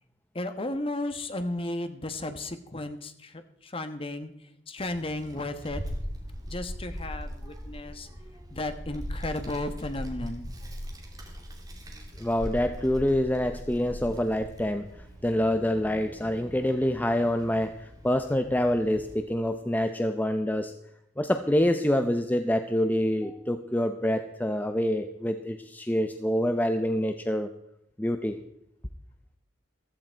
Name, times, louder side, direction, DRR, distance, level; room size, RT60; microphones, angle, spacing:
voice 1, 0.3-4.3 4.7-5.8 6.5-8.1 8.5-10.5, left 1 dB, 30° left, 9 dB, 1.2 m, -34 dB
Child speech kid speaking, 4.8-19.2, equal, 20° right, 2.7 m, -40 dB
voice 2, 12.2-14.9 15.2-20.7 21.2-27.5 28.0-28.4, left 1 dB, 10° left, 8 dB, 0.7 m, -26 dB
15.0 x 13.5 x 4.6 m, 0.79 s
head